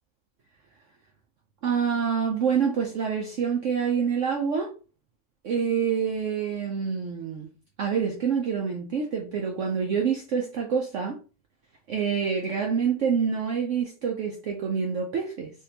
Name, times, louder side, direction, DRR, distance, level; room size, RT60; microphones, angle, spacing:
voice 1, 1.6-4.7 5.4-7.5 7.8-11.2 11.9-15.5, right 6 dB, 75° right, 0.7 m, -26 dB
3.7 x 2.6 x 2.8 m
omnidirectional pair, 1.9 m